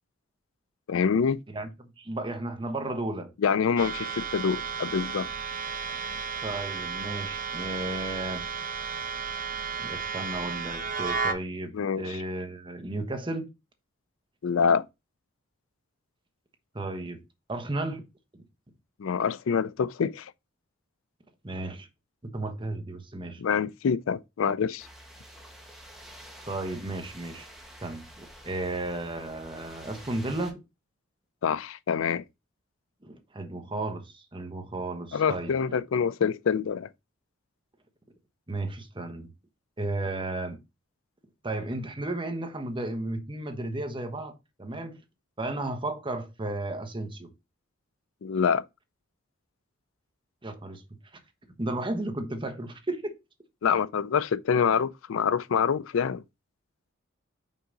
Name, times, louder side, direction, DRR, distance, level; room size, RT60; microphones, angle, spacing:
voice 1, 0.9-1.4 3.4-5.3 11.7-12.2 14.4-14.8 19.0-20.3 23.4-24.9 31.4-32.2 35.1-36.9 48.2-48.6 53.6-56.2, left 6 dB, 80° left, 0.4 m, -26 dB
voice 2, 1.5-3.3 6.4-8.5 9.8-13.5 16.7-17.2 17.5-18.0 21.4-21.9 22.2-23.4 26.5-27.5 27.8-30.6 33.0-35.8 38.5-39.3 39.8-40.6 41.4-45.0 45.4-47.3 50.4-50.8 51.6-53.2, right 2 dB, 25° right, 1.1 m, -34 dB
sound 1, 3.8-11.3, right 6 dB, 40° right, 0.8 m, -33 dB
sound 2, 24.8-30.5, equal, ahead, 1.4 m, -49 dB
5.4 x 4.9 x 3.8 m
head